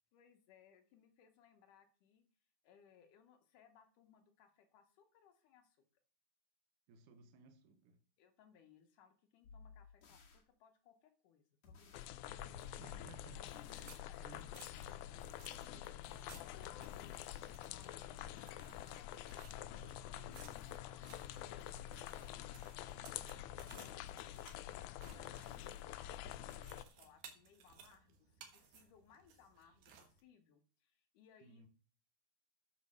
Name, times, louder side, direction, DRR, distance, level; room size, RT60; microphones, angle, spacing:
voice 1, 0.1-2.3 2.6-5.9 8.2-13.1 13.6-14.5 14.9-22.7 23.2-31.7, left 8 dB, 70° left, 2.5 m, -67 dB
voice 2, 6.9-8.0 12.8-14.5 15.7-15.9 31.4-31.7, right 4 dB, 70° right, 2.5 m, -60 dB
sound 1, 9.4-10.4 11.6-13.9 14.3-17.7 18.2-19.0 19.5-22.6 22.9-23.8 24.1-26.5, left 4 dB, 55° left, 2.8 m, -60 dB
sound 2, 11.9-26.8, left 13 dB, 85° left, 1.7 m, -48 dB
sound 3, 13.5-30.2, right 7 dB, 85° right, 3.2 m, -62 dB
10.5 x 4.9 x 6.5 m
omnidirectional pair, 4.1 m